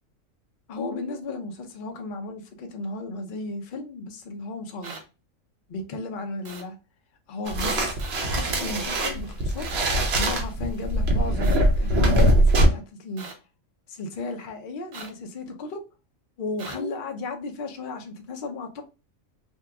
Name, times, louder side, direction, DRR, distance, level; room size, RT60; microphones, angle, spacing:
voice 1, 0.7-5.0 5.7-6.8 7.3-8.0 8.3-9.7 10.2-12.4 12.7-13.3 13.9-15.8 16.4-18.8, left 2 dB, 55° left, 0.6 m, -34 dB
sound 1, 4.8-5.0 6.5-6.6 8.0-8.2 9.7-9.9 11.4-11.6 13.2-13.3 14.9-15.1 16.6-16.8, right 4 dB, 70° right, 1.1 m, -39 dB
sound 2, 7.5-12.7, right 1 dB, 55° right, 0.9 m, -22 dB
2.8 x 2.3 x 3.4 m
omnidirectional pair, 1.4 m